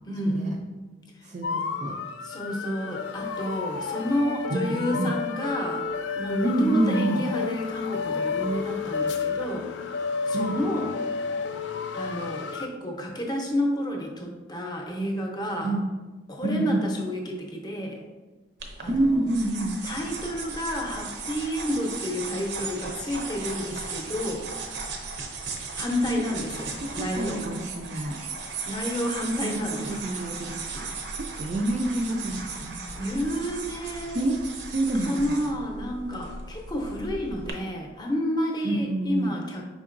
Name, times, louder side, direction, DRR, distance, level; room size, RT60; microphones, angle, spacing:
voice 1, 0.1-0.7 2.2-5.8 6.1-9.7 10.3-10.9 11.9-15.7 16.3-18.0 18.8-19.2 19.8-24.5 25.7-27.5 28.7-30.0 33.0-34.2 34.9-39.6, equal, 25° left, 0 dB, 0.6 m, -30 dB
voice 2, 1.2-2.0 4.5-5.1 6.4-7.2 10.3-10.6 15.6-15.9 16.4-16.8 18.9-19.8 26.1-26.2 26.9-28.2 29.4-32.8 34.1-34.4 34.7-35.3 38.6-39.4, right 1 dB, 40° right, 0 dB, 0.4 m, -27 dB
sound 1, 1.4-12.7, left 5 dB, 85° left, 0.3 m, -31 dB
sound 2, 18.6-37.5, right 4 dB, 80° right, 0.6 m, -37 dB
5.1 x 3.8 x 2.5 m, 1.2 s
head